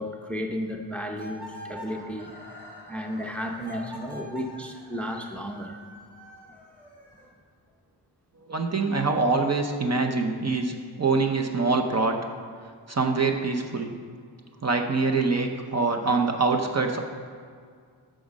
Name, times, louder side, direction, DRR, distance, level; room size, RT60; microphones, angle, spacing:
voice 1, 0.0-2.3 2.9-5.8, equal, 5° left, 3 dB, 0.6 m, -33 dB
sound 1, 1.2-2.0 3.6-4.6, equal, 60° right, 1.8 m, -41 dB
Chicken rooster, 1.8-7.8, left 1 dB, 20° right, 2.2 m, -50 dB
voice 2, 8.4-12.2 12.9-13.9 14.6-17.0, right 3 dB, 35° right, 3 dB, 0.7 m, -24 dB
9.2 x 6.4 x 6.1 m, 2.1 s
wide cardioid pair, 145°, 46 cm